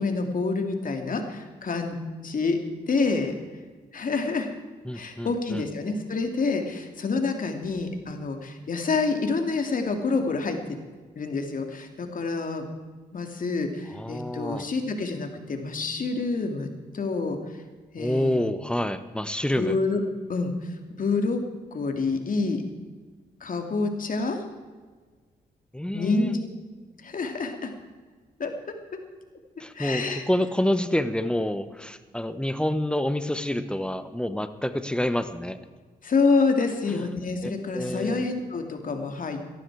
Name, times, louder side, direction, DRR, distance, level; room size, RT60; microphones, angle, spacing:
voice 1, 0.0-2.0 2.2-2.6 2.9-3.4 3.9-4.5 4.9-10.6 11.2-12.7 13.1-16.7 16.9-17.6 17.9-18.4 19.6-20.0 20.3-21.4 21.7-22.6 23.4-24.4 25.9-26.4 27.0-27.7 28.4-28.5 29.7-30.2 36.0-39.4, left 4 dB, 55° left, 5 dB, 2.6 m, -27 dB
voice 2, 4.8-5.6 13.9-14.7 18.0-19.8 25.7-26.3 29.6-35.6 37.4-38.2, left 1 dB, 5° left, 11 dB, 1.2 m, -28 dB
17.5 x 14.0 x 4.9 m, 1.4 s
cardioid pair, 65°, 17 cm